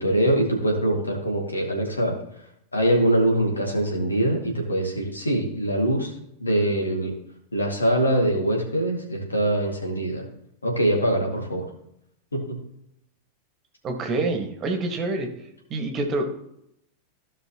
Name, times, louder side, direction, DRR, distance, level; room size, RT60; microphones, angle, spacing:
voice 1, 0.0-2.1 2.7-6.1 6.4-7.1 7.5-10.2 10.6-11.6 12.3-12.6, right 1 dB, 80° left, 0 dB, 2.2 m, -23 dB
voice 2, 13.8-15.3 15.7-16.2, right 2 dB, 30° right, 4 dB, 1.6 m, -26 dB
15.5 x 5.6 x 3.0 m, 0.76 s
figure-of-eight pair, 90°, 0 cm